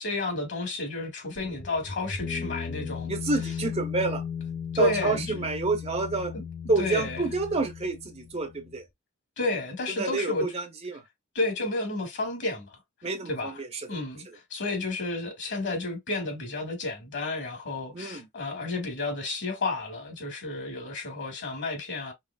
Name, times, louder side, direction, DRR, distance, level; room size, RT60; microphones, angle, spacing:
voice 1, 0.0-3.1 3.4-3.5 4.7-5.5 6.3-6.4 6.8-7.2 9.4-10.5 11.3-12.7 13.3-13.6 13.9-22.1, left 2 dB, 55° left, 2.1 m, -31 dB
sound 1, 1.4-8.8, left 6 dB, 35° left, 0.7 m, -36 dB
voice 2, 3.1-4.2 4.8-6.3 6.7-8.8 9.9-11.0 13.0-13.8 17.9-18.3, right 3 dB, 30° right, 0.8 m, -28 dB
5.5 x 3.1 x 2.3 m
head